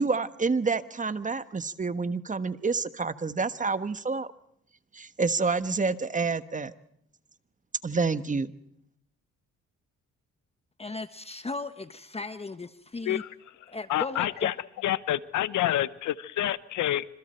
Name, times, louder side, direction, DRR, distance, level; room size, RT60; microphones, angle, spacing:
voice 1, 0.0-4.3 4.9-6.7 7.8-8.5, right 4 dB, 25° right, 12 dB, 1.4 m, -28 dB
voice 2, 10.8-13.2 13.7-14.5, left 3 dB, 20° left, 11 dB, 1.2 m, -36 dB
voice 3, 13.9-14.5 14.8-17.1, left 13 dB, 75° left, 16 dB, 1.0 m, -28 dB
27.5 x 26.5 x 4.5 m, 0.73 s
cardioid pair, 90°, 30 cm